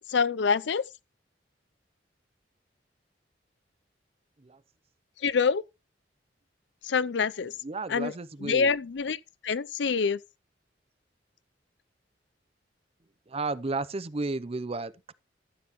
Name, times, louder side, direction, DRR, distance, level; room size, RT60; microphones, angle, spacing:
voice 1, 0.1-0.8 5.2-5.6 6.8-7.5 7.9-8.1 8.4-9.2 9.4-10.2, left 5 dB, 70° left, 0.5 m, -26 dB
voice 2, 7.6-8.7 13.3-15.1, right 3 dB, 35° right, 0.6 m, -33 dB
13.0 x 8.7 x 3.0 m
head